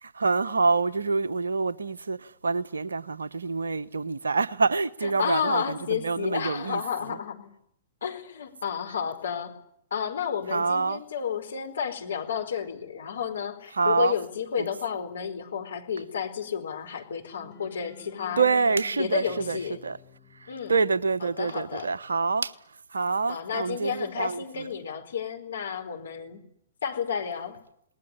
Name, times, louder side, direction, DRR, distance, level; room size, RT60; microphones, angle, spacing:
voice 1, 0.0-6.8 7.1-7.2 10.5-11.0 13.7-14.1 14.6-14.7 18.4-20.0 20.4-22.6 22.9-24.7, right 4 dB, 70° right, 1.0 m, -26 dB
voice 2, 5.0-7.5 8.0-9.5 9.9-18.5 19.0-19.8 20.5-20.7 21.4-21.9 23.3-26.4 26.8-27.6, left 7 dB, 65° left, 4.5 m, -31 dB
sound 1, 17.3-21.3, left 10 dB, 30° left, 7.4 m, -51 dB
28.5 x 20.0 x 9.8 m
figure-of-eight pair, 110°, 0 cm